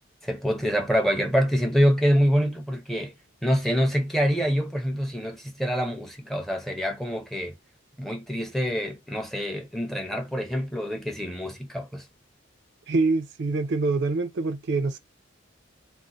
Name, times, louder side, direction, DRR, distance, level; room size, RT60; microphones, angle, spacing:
voice 1, 0.2-3.1 3.4-7.5 8.0-12.1, equal, ahead, 0.5 m, -25 dB
voice 2, 12.9-15.0, right 3 dB, 60° right, 0.4 m, -25 dB
2.5 x 2.0 x 3.9 m
head